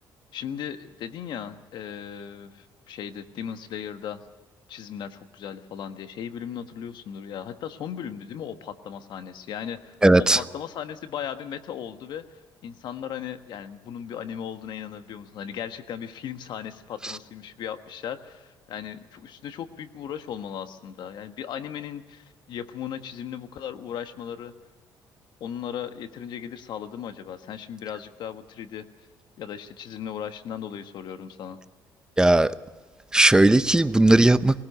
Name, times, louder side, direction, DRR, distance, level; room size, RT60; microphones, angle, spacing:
voice 1, 0.3-4.2 4.7-24.5 25.4-28.9 29.4-31.6, left 9 dB, 65° left, 1.4 m, -37 dB
voice 2, 10.0-10.4 17.0-17.1 32.2-32.6 33.1-34.6, right 2 dB, 10° right, 0.7 m, -17 dB
20.0 x 19.0 x 6.7 m
cardioid pair, 105°, 8 cm